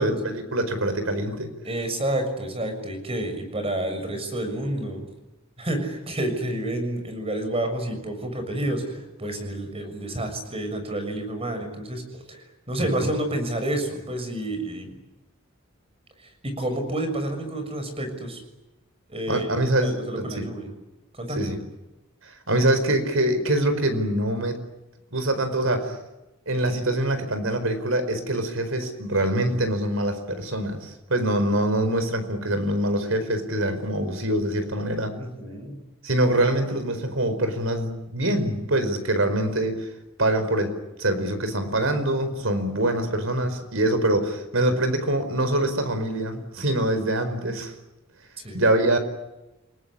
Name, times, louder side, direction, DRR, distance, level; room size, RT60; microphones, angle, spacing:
voice 1, 0.0-1.5 12.8-13.1 19.3-20.4 21.3-21.6 22.2-24.6 25.1-26.0 26.5-35.2 36.0-39.9 40.2-47.7 48.5-49.0, right 1 dB, 70° right, 9 dB, 4.9 m, -24 dB
voice 2, 1.6-5.0 5.6-14.9 16.4-18.4 19.1-20.7 21.1-21.5 35.2-35.8 48.4-48.6, right 1 dB, 30° right, 7 dB, 6.7 m, -29 dB
29.5 x 19.5 x 9.9 m, 1.0 s
head